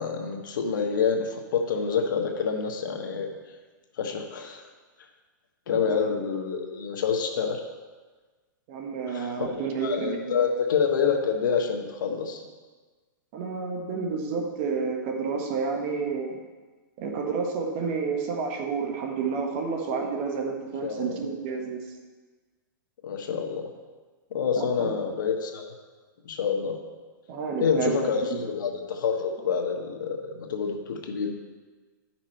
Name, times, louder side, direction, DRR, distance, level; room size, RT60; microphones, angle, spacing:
voice 1, 0.0-3.3 4.0-4.7 5.7-7.6 9.1-12.4 20.8-21.2 23.0-23.7 24.3-25.7 26.2-26.8 27.6-31.3, left 6 dB, 75° left, 3 dB, 1.3 m, -27 dB
voice 2, 8.7-10.5 13.3-16.4 17.0-21.8 24.6-24.9 27.3-28.0 28.2-28.4, right 5 dB, 40° right, 3 dB, 1.2 m, -30 dB
11.0 x 6.0 x 4.4 m, 1.4 s
hypercardioid pair, 155°, 11 cm